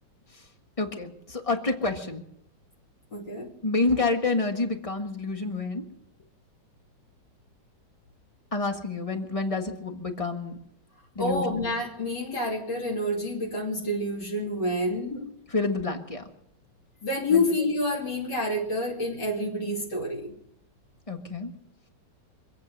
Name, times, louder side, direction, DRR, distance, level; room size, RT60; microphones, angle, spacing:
voice 1, 0.8-2.2 3.6-5.8 8.5-10.5 11.1-11.7 15.1-15.3 15.5-16.2 17.3-17.4 21.1-21.5, left 3 dB, 20° left, 5 dB, 1.5 m, -28 dB
voice 2, 3.1-3.5 11.2-15.2 17.0-20.3, left 1 dB, 70° left, -4 dB, 3.5 m, -28 dB
25.5 x 8.6 x 6.5 m, 0.75 s
omnidirectional pair, 1.9 m